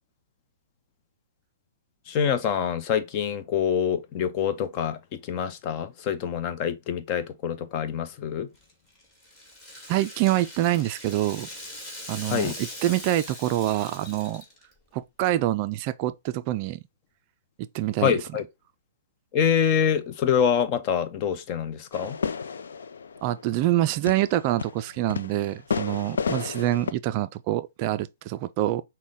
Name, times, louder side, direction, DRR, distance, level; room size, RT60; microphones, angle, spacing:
voice 1, 2.1-8.5 12.3-12.6 18.0-18.4 19.3-22.2, left 8 dB, 35° left, 0.6 m, -25 dB
Rattle (instrument), 8.5-14.8, left 1 dB, 15° left, 2.0 m, -41 dB
voice 2, 9.9-11.5 12.1-14.4 14.9-16.8 17.7-18.1 23.2-28.8, right 14 dB, 40° right, 0.3 m, -26 dB
sound 1, 21.9-26.9, left 6 dB, 80° left, 0.5 m, -32 dB
6.1 x 2.2 x 3.6 m
hypercardioid pair, 140°, 0 cm